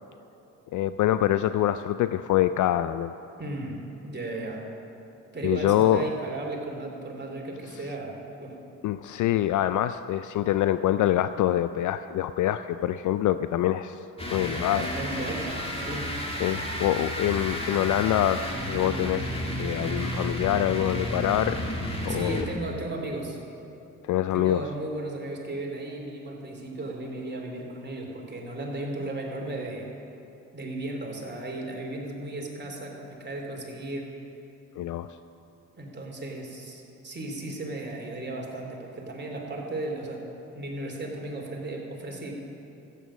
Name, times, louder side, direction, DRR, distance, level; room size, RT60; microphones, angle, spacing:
voice 1, 0.7-3.1 5.4-6.0 8.8-14.0 14.3-14.9 16.4-21.6 22.1-22.5 24.0-24.6 34.8-35.1, left 12 dB, 45° left, 12 dB, 0.4 m, -25 dB
voice 2, 3.4-4.6 5.3-8.1 8.4-8.6 14.6-16.1 22.1-23.4 24.3-29.9 30.5-34.1 35.7-40.2 40.5-42.3, right 2 dB, 25° right, 0 dB, 3.2 m, -35 dB
sound 1, 14.2-22.7, equal, 15° left, 2.6 m, -32 dB
14.0 x 9.1 x 6.3 m, 2.9 s
hypercardioid pair, 50°, 42 cm